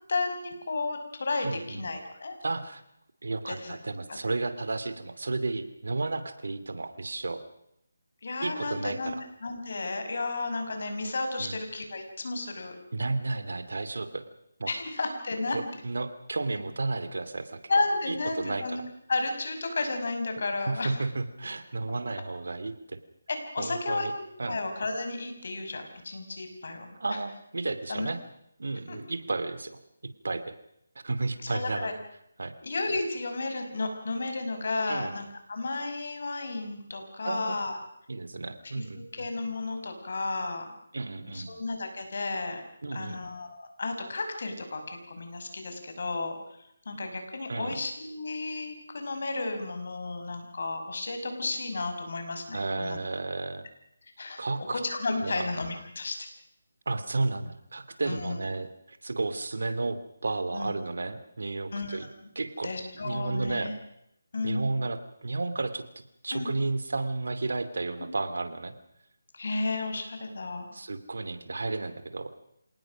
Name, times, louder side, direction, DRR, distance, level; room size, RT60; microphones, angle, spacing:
voice 1, 0.1-2.4 3.5-3.8 4.1-4.2 8.2-9.2 9.4-12.8 14.7-15.6 17.7-18.8 19.1-20.9 23.3-24.1 24.5-27.0 27.9-28.1 28.9-29.0 31.5-31.9 32.6-37.8 38.7-40.7 41.3-42.6 42.9-46.4 46.9-53.0 54.2-54.4 54.7-56.3 58.1-58.4 60.5-60.7 61.7-62.1 62.6-63.7 64.3-64.7 66.3-66.5 69.3-70.7, left 3 dB, 60° left, 6 dB, 5.6 m, -33 dB
voice 2, 1.4-1.8 2.4-2.8 3.2-7.4 8.4-9.2 11.4-11.6 12.9-14.2 14.6-14.7 15.5-17.6 18.1-18.9 20.7-23.0 23.6-24.1 24.4-24.6 27.0-28.2 28.6-29.8 30.2-30.5 31.0-31.9 32.4-32.5 34.9-35.2 37.2-37.5 38.1-39.3 40.9-41.5 42.8-43.2 47.5-47.8 52.5-53.6 54.4-54.8 55.2-55.5 56.9-62.1 62.3-63.7 64.4-68.7 70.7-72.3, right 3 dB, 75° right, 12 dB, 2.6 m, -32 dB
27.0 x 19.0 x 6.3 m, 0.76 s
figure-of-eight pair, 165°, 0 cm